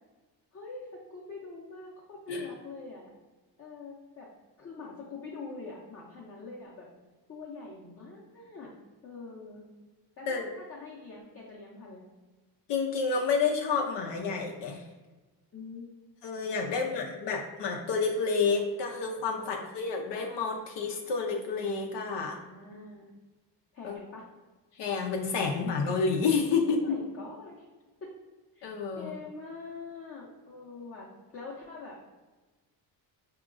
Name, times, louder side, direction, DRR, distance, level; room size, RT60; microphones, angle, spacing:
voice 1, 0.5-3.0 3.6-4.3 4.6-6.9 7.3-8.7 9.0-9.6 10.2-12.1 15.5-15.9 16.7-17.1 19.4-19.7 22.1-23.1 23.7-24.3 26.6-27.6 28.0-28.1 28.5-31.1 31.3-32.0, left 3 dB, 30° left, -5 dB, 0.7 m, -44 dB
voice 2, 12.7-14.9 16.2-22.4 23.8-24.0 24.7-27.0 28.6-29.1, left 5 dB, 70° left, 1 dB, 0.6 m, -29 dB
4.8 x 2.9 x 2.5 m, 1.2 s
cardioid pair, 130°, 43 cm